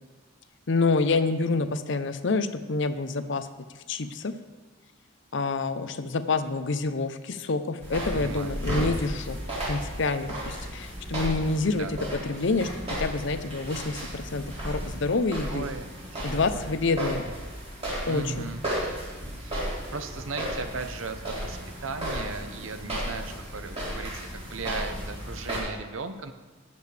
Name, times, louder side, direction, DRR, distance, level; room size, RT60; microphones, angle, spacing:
voice 1, 0.7-3.5 3.9-4.3 5.3-9.4 9.7-12.0 12.2-12.7 13.0-15.7 16.2-17.3 18.1-18.5, left 3 dB, 60° left, 10 dB, 0.6 m, -27 dB
sound 1, 7.8-25.6, right 1 dB, 30° right, 4.0 m, -34 dB
voice 2, 8.1-8.6 11.8-11.9 15.5-17.3 18.0-18.7 19.4-26.3, right 4 dB, 70° right, 9 dB, 0.8 m, -37 dB
18.5 x 6.9 x 3.3 m, 1.3 s
head